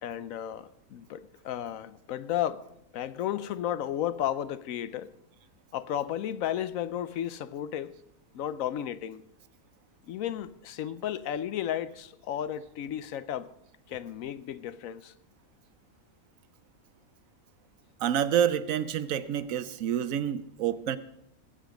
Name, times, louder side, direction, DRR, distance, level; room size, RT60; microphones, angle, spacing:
voice 1, 0.0-2.6 2.9-5.1 5.7-7.9 8.3-9.2 10.1-13.5 13.9-15.1, left 11 dB, 75° left, 1.0 m, -33 dB
voice 2, 18.0-21.0, right 9 dB, 70° right, 1.0 m, -28 dB
20.0 x 7.7 x 5.1 m
omnidirectional pair, 1.5 m